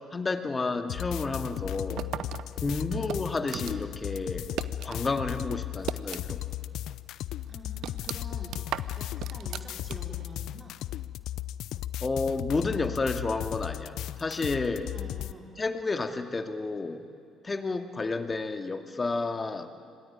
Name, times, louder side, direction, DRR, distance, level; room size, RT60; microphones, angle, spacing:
voice 1, 0.1-2.1 2.6-4.5 4.8-6.7 12.0-14.9 15.6-17.0 17.4-19.7, left 3 dB, 30° left, 7 dB, 2.3 m, -31 dB
sound 1, 0.9-15.3, left 13 dB, 70° left, 0.5 m, -36 dB
sound 2, 2.0-5.1 5.4-6.6 6.9-7.0 7.4-10.3, right 11 dB, 65° right, 0.8 m, -37 dB
voice 2, 7.5-10.8 14.9-15.5, right 1 dB, 30° right, 1 dB, 4.9 m, -47 dB
26.0 x 19.5 x 9.4 m, 2.5 s
hypercardioid pair, 50°, 0 cm